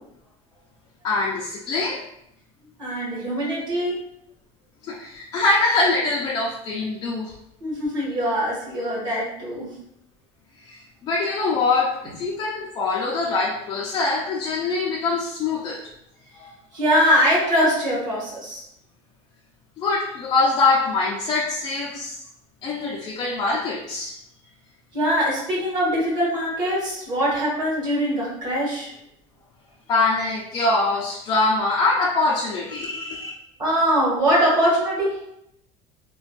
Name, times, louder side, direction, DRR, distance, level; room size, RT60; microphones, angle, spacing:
voice 1, 1.0-2.0 4.8-7.3 10.6-15.8 19.8-22.2 22.6-24.2 29.9-33.3, left 3 dB, 30° left, -4 dB, 0.3 m, -23 dB
voice 2, 2.8-4.0 7.6-9.7 16.4-18.6 24.9-28.9 33.6-35.1, equal, 35° right, -6 dB, 1.4 m, -22 dB
3.3 x 2.2 x 2.2 m, 0.78 s
cardioid pair, 175°, 13 cm